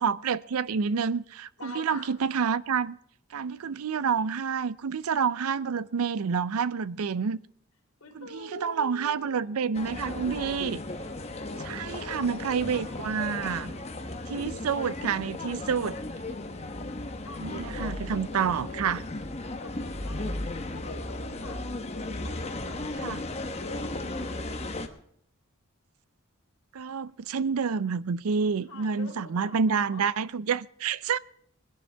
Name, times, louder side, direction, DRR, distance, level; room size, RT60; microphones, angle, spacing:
voice 1, 0.0-3.0 3.3-7.4 8.1-10.8 11.6-13.7 14.3-16.0 17.4-19.0 23.0-23.2 26.7-31.2, right 6 dB, 85° right, 0.5 m, -28 dB
voice 2, 1.6-2.1 8.0-10.0 11.4-16.0 17.2-18.0 18.3-18.9 19.6-20.4 20.7-22.9 23.6-24.4 28.7-30.1, left 3 dB, 80° left, 3.5 m, -46 dB
sound 1, 9.7-24.9, left 2 dB, 30° left, 1.0 m, -35 dB
20.5 x 11.0 x 3.4 m
head